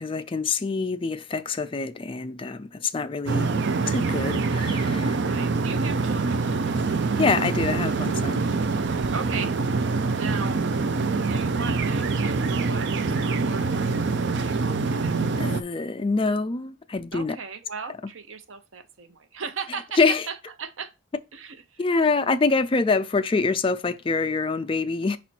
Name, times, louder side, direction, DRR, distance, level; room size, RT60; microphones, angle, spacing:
voice 1, 0.0-3.5 3.9-5.2 7.2-8.4 15.4-17.4 20.0-20.3 21.8-25.2, left 4 dB, 25° left, 0.4 m, -25 dB
sound 1, 3.3-15.6, right 4 dB, 65° right, 0.5 m, -25 dB
voice 2, 5.2-6.4 9.1-9.6 10.2-10.6 11.3-15.2 17.1-20.9 21.3-21.8, right 5 dB, 90° right, 0.8 m, -37 dB
5.2 x 4.2 x 4.4 m
head